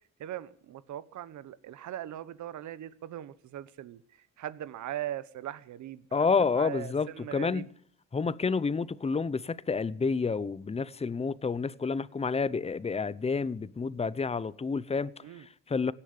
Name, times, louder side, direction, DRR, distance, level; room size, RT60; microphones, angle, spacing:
voice 1, 0.2-7.6 15.2-15.5, right 12 dB, 70° right, 1.1 m, -40 dB
voice 2, 6.1-7.7 8.1-15.9, left 5 dB, 20° left, 0.7 m, -29 dB
17.0 x 10.0 x 8.4 m
cardioid pair, 90°, 30 cm